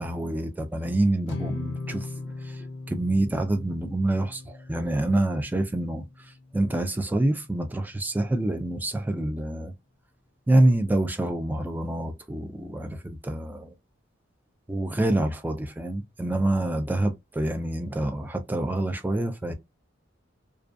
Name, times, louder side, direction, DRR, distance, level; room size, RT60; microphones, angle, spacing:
voice 1, 0.0-6.1 6.5-9.7 10.5-13.8 14.7-19.5, right 1 dB, 10° right, 0.3 m, -26 dB
sound 1, 1.3-7.7, left 3 dB, 65° left, 0.5 m, -39 dB
2.3 x 2.2 x 2.5 m
head